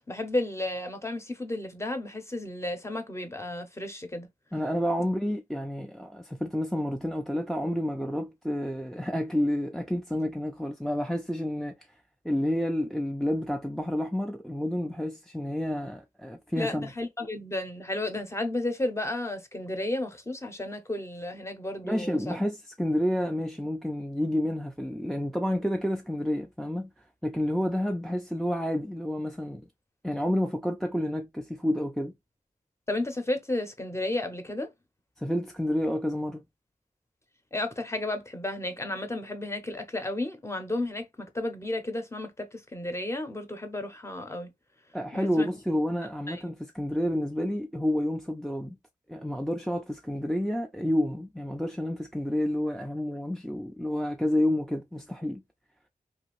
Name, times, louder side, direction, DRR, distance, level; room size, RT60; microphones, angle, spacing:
voice 1, 0.0-4.3 16.6-22.4 32.9-34.7 37.5-44.5 45.1-45.5 46.3-46.4, left 1 dB, 20° left, 0.7 m, -33 dB
voice 2, 4.5-11.8 12.2-16.9 21.8-26.9 27.2-29.7 30.0-32.1 35.2-36.4 44.9-48.8 49.1-55.4, left 1 dB, ahead, 0.4 m, -29 dB
2.7 x 2.6 x 3.0 m
wide cardioid pair, 95°, 15 cm